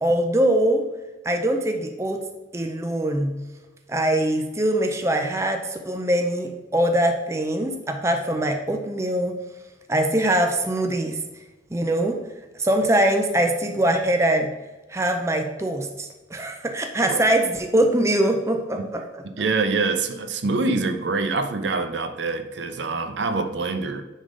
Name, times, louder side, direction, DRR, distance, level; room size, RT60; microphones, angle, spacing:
voice 1, 0.0-0.8 1.2-2.3 2.5-3.4 3.9-9.4 9.9-11.2 11.7-12.2 12.6-14.5 14.9-19.0, right 1 dB, 15° right, 4 dB, 0.4 m, -22 dB
voice 2, 19.4-24.0, right 3 dB, 70° right, 8 dB, 0.6 m, -25 dB
9.7 x 3.6 x 3.8 m, 1.1 s
head